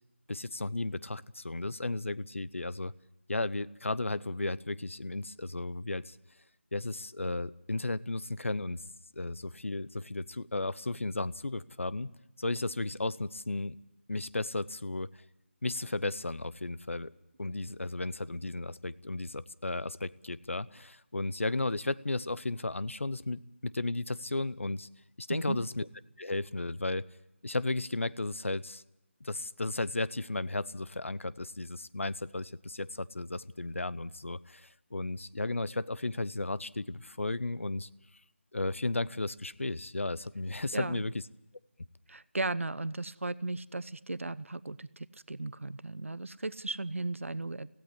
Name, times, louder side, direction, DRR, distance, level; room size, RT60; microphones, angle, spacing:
voice 1, 0.3-2.9 3.3-6.2 6.7-8.8 9.2-12.1 12.4-13.8 14.1-15.1 15.6-17.1 17.4-24.9 25.2-25.9 26.2-27.1 27.4-28.8 29.2-37.9 38.5-41.1, left 2 dB, 80° left, 18 dB, 0.9 m, -34 dB
voice 2, 40.7-41.0 42.1-47.7, right 2 dB, 80° right, 17 dB, 0.7 m, -36 dB
17.5 x 15.5 x 9.9 m, 0.91 s
figure-of-eight pair, 170°, 7 cm